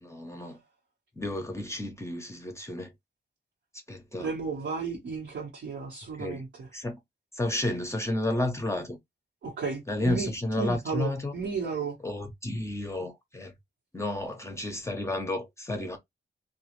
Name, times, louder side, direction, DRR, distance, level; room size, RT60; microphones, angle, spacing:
voice 1, 0.0-0.6 1.2-2.9 3.9-4.3 6.2-6.4 6.7-7.0 7.3-9.0 9.9-11.3 12.0-13.5 13.9-16.0, left 1 dB, 15° left, 0.6 m, -31 dB
voice 2, 4.2-6.7 9.4-10.3 10.6-12.0, right 5 dB, 90° right, 1.1 m, -33 dB
3.0 x 2.3 x 3.0 m
wide cardioid pair, 155°, 18 cm